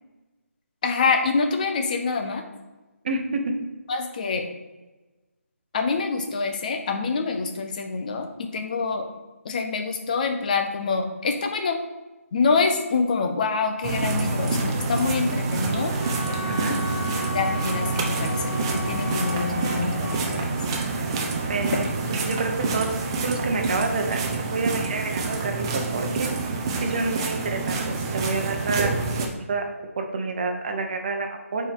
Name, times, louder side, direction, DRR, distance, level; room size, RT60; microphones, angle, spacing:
voice 1, 0.8-2.4 3.9-4.5 5.7-9.1 9.4-11.8 12.3-15.9 17.3-20.5, left 4 dB, 35° left, 5 dB, 0.7 m, -26 dB
voice 2, 3.0-3.5 16.5-16.8 21.5-21.7 22.1-22.9 23.2-26.3 26.8-29.6 30.0-31.7, right 3 dB, 40° right, 3 dB, 1.0 m, -28 dB
sound 1, 13.8-29.3, right 3 dB, 20° right, 0.6 m, -27 dB
Wind instrument woodwind instrument, 16.0-20.2, left 3 dB, 60° left, 1.0 m, -35 dB
7.7 x 4.5 x 3.7 m, 1.2 s
hypercardioid pair, 165°, 8 cm